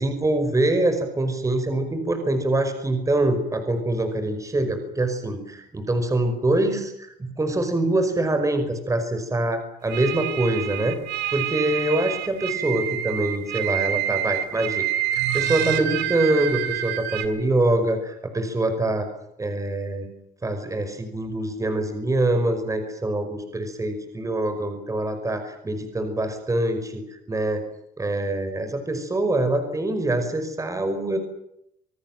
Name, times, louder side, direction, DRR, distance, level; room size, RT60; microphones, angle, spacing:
voice 1, 0.0-11.0 11.3-14.9 15.1-19.1 19.4-20.1 20.4-27.6 28.0-31.2, right 1 dB, 20° right, 8 dB, 5.4 m, -24 dB
sound 1, 9.9-17.3, right 12 dB, 85° right, 3.0 m, -27 dB
27.5 x 19.0 x 9.1 m, 0.77 s
cardioid pair, 110°, 17 cm